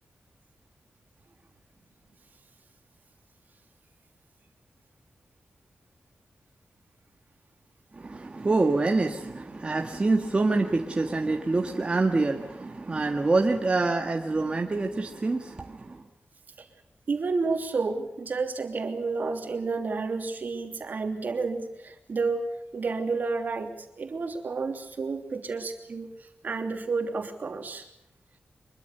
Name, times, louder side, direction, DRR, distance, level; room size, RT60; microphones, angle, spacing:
voice 1, 7.9-16.0, right 3 dB, 30° right, 3 dB, 1.7 m, -26 dB
voice 2, 17.1-27.9, right 4 dB, 55° right, 6 dB, 3.1 m, -31 dB
25.0 x 23.0 x 6.9 m, 0.83 s
wide cardioid pair, 150°, 4 cm